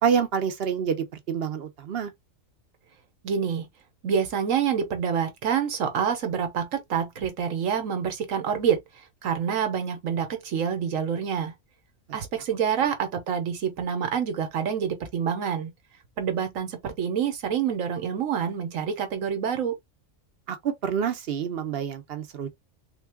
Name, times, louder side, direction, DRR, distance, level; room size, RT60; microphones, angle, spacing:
voice 1, 0.0-2.1 20.5-22.5, right 7 dB, 55° right, 0.9 m, -27 dB
voice 2, 3.2-3.7 4.0-8.8 9.2-11.5 12.1-15.7 16.2-19.8, right 7 dB, 90° right, 1.3 m, -27 dB
3.7 x 2.4 x 3.4 m
omnidirectional pair, 1.3 m